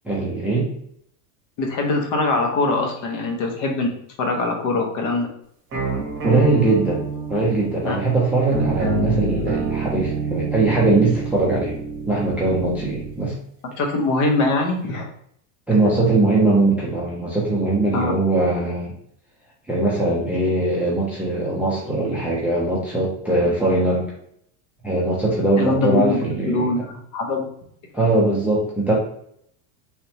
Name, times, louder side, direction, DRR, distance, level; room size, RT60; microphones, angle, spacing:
voice 1, 0.0-0.7 6.2-7.0 7.3-11.8 12.1-13.3 15.7-18.9 19.7-24.1 24.8-26.7 27.9-28.9, right 2 dB, 5° right, -6 dB, 0.5 m, -21 dB
voice 2, 1.6-3.9 4.2-5.3 7.8-8.0 13.8-15.1 17.9-18.1 23.5-23.6 25.6-27.5, left 2 dB, 45° left, 2 dB, 0.9 m, -22 dB
sound 1, 5.7-13.2, right 4 dB, 30° right, 1.4 m, -27 dB
3.3 x 3.0 x 2.8 m, 0.68 s
supercardioid pair, 150°, 44 cm